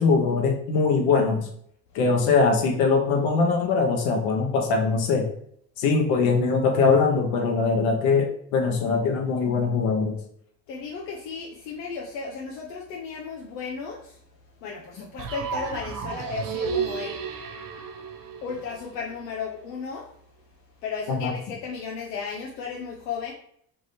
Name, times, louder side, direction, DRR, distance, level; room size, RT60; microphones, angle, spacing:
voice 1, 0.0-1.5 1.9-5.3 5.8-10.2 21.1-21.3, left 4 dB, 70° left, 3 dB, 1.2 m, -22 dB
voice 2, 10.7-14.2 14.6-17.2 18.4-20.1 20.8-23.3, left 5 dB, 90° left, -1 dB, 0.8 m, -34 dB
sound 1, 15.2-19.1, right 6 dB, 45° right, 0.7 m, -32 dB
3.6 x 3.1 x 4.0 m, 0.66 s
hypercardioid pair, 70°, 48 cm